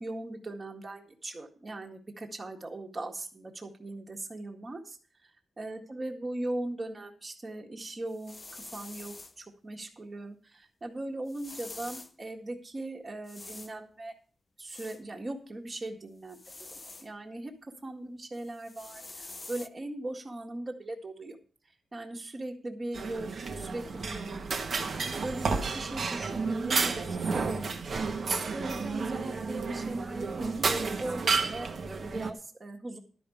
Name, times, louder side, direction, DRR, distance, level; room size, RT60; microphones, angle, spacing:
voice 1, 0.0-5.0 5.2-5.3 5.6-8.4 8.7-14.1 14.6-16.4 16.7-17.5 17.8-21.4 21.9-24.6 24.9-33.0, right 2 dB, 25° right, 2 dB, 1.8 m, -39 dB
sound 1, 8.1-9.4 11.3-12.1 13.2-13.7 14.7-15.0 16.3-17.1 18.3-19.7, left 3 dB, 25° left, 0.6 m, -46 dB
sound 2, 22.9-32.3, right 4 dB, 50° right, 1.2 m, -31 dB
12.0 x 5.3 x 8.4 m, 0.40 s
wide cardioid pair, 140°, 0 cm